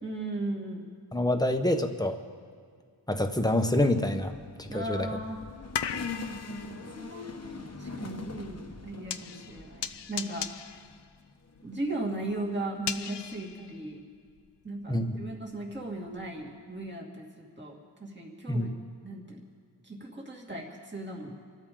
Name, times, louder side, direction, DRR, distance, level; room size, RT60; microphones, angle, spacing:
voice 1, 0.0-0.9 4.7-5.4 6.5-10.9 11.6-14.0 14.6-18.7 19.0-19.4 19.8-21.3, right 1 dB, 25° right, -2 dB, 2.6 m, -37 dB
voice 2, 1.1-2.2 3.1-5.2 14.9-15.2 18.5-18.7, left 1 dB, 10° left, 6 dB, 1.2 m, -27 dB
sound 1, 4.1-11.0 11.5-13.4, left 3 dB, 35° left, 1.2 m, -43 dB
sound 2, 4.4-14.5 14.8-16.5 16.8-16.9, left 8 dB, 70° left, 0.7 m, -40 dB
27.0 x 13.5 x 3.9 m, 2.1 s
wide cardioid pair, 70°, 43 cm